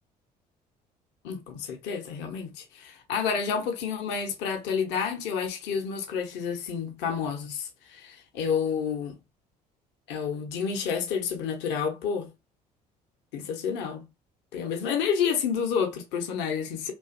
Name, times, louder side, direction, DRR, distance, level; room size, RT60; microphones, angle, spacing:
voice 1, 1.2-9.2 10.1-12.3 13.3-14.0 14.5-16.9, left 6 dB, 55° left, 0.6 m, -29 dB
2.5 x 2.3 x 2.4 m
figure-of-eight pair, 55°, 21 cm